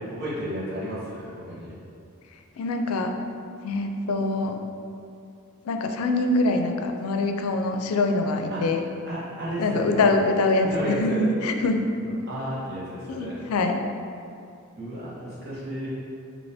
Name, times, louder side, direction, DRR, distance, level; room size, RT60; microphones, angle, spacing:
voice 1, 0.0-1.7 8.5-8.6 9.0-10.1 10.7-11.3 12.0-13.4 14.8-15.9, equal, 45° right, -9 dB, 1.3 m, -32 dB
voice 2, 2.6-3.1 3.6-4.5 5.7-8.8 9.6-11.8 13.1-13.8, left 2 dB, 85° left, 4 dB, 0.4 m, -24 dB
5.3 x 2.8 x 3.4 m, 2.5 s
head